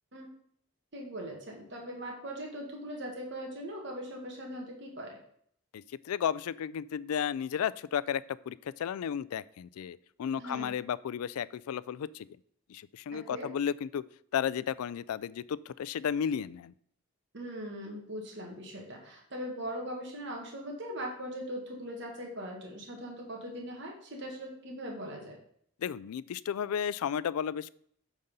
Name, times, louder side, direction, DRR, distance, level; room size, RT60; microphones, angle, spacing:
voice 1, 0.9-5.2 10.4-10.7 13.1-13.5 17.3-25.4, equal, 55° right, -1 dB, 1.6 m, -40 dB
voice 2, 5.7-12.3 12.7-14.0 14.3-16.7 25.8-27.7, left 8 dB, 90° left, 19 dB, 0.3 m, -33 dB
8.8 x 4.1 x 5.4 m, 0.65 s
head